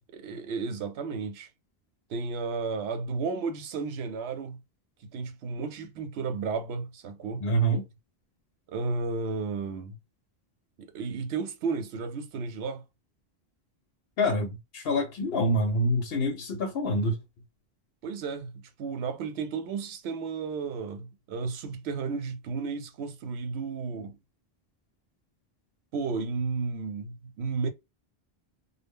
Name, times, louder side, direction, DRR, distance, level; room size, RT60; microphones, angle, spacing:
voice 1, 0.1-1.5 2.1-4.6 5.0-7.5 8.7-10.0 10.8-12.8 18.0-24.2 25.9-27.7, right 4 dB, 85° right, 0.9 m, -33 dB
voice 2, 7.4-7.8 14.2-17.2, equal, 70° left, 0.8 m, -26 dB
2.1 x 2.1 x 3.5 m
omnidirectional pair, 1.1 m